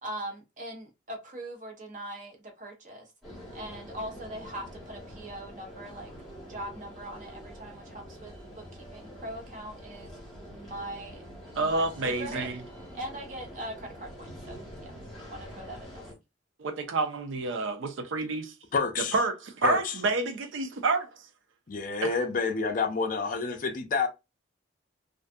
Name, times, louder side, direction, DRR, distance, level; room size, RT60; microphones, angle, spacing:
voice 1, 0.0-3.1 3.5-6.1 6.5-10.1 10.5-11.2 11.6-12.5 12.9-14.9 15.3-16.0, right 1 dB, 40° right, 0.7 m, -41 dB
sound 1, 3.2-16.1, equal, ahead, 1.2 m, -46 dB
voice 2, 11.5-12.5 16.6-18.5 19.1-21.1 22.0-22.1, right 3 dB, 75° right, 0.5 m, -28 dB
voice 3, 18.7-19.2 19.6-19.9 21.7-24.1, left 4 dB, 45° left, 0.4 m, -28 dB
2.5 x 2.3 x 2.5 m
head